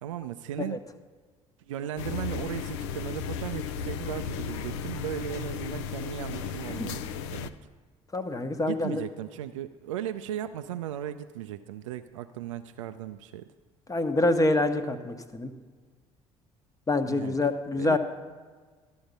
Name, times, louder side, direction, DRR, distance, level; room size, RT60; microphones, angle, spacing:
voice 1, 0.0-0.8 1.6-7.5 8.6-13.5 17.1-17.4 17.8-18.0, right 11 dB, 75° right, 10 dB, 0.4 m, -36 dB
sound 1, 2.0-7.5, left 7 dB, 70° left, 0.5 m, -35 dB
voice 2, 8.1-9.0 13.9-15.5 16.9-18.0, left 2 dB, 20° left, 8 dB, 1.0 m, -26 dB
12.5 x 6.9 x 5.2 m, 1.5 s
figure-of-eight pair, 55°, 16 cm